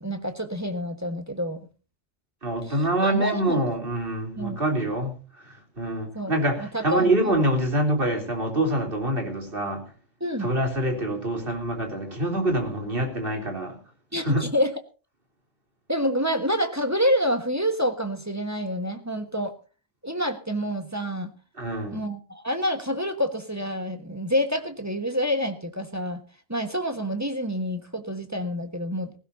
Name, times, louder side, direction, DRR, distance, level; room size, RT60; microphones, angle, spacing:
voice 1, 0.0-1.6 2.6-2.8 3.0-3.6 4.4-4.6 6.1-6.3 6.6-7.4 10.2-10.5 14.1-14.7 15.9-19.5 20.0-21.3 21.9-26.2 26.5-29.2, equal, 15° right, 6 dB, 1.4 m, -27 dB
voice 2, 2.4-5.1 5.5-9.8 10.4-13.8 14.2-14.5 21.6-22.0, right 1 dB, 55° right, 3 dB, 3.7 m, -25 dB
19.0 x 16.5 x 2.7 m, 0.34 s
omnidirectional pair, 1.2 m